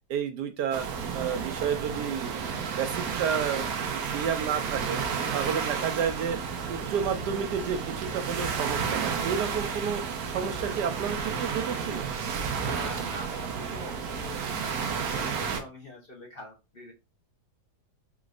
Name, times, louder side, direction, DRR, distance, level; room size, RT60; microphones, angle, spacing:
voice 1, 0.1-0.9 1.1-2.4 2.7-3.7 3.9-5.0 5.3-6.4 6.6-12.1, right 7 dB, 85° right, 7 dB, 1.3 m, -31 dB
sound 1, 0.7-15.6, right 6 dB, 70° right, 1.1 m, -32 dB
voice 2, 5.2-5.8 12.6-16.9, left 1 dB, 45° left, -1 dB, 0.9 m, -44 dB
5.1 x 3.0 x 2.4 m, 0.27 s
omnidirectional pair, 1.8 m